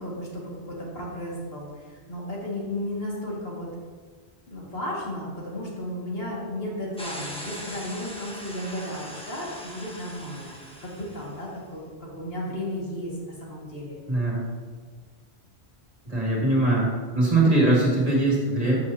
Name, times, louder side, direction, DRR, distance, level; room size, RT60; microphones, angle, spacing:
voice 1, 0.0-3.7 4.5-14.0, left 1 dB, 65° left, -4 dB, 2.3 m, -34 dB
sound 1, 7.0-11.4, equal, 5° left, 1.1 m, -40 dB
voice 2, 14.1-14.4 16.1-16.9 17.1-18.8, right 2 dB, 35° right, -4 dB, 2.4 m, -21 dB
13.0 x 6.6 x 2.8 m, 1.5 s
omnidirectional pair, 1.1 m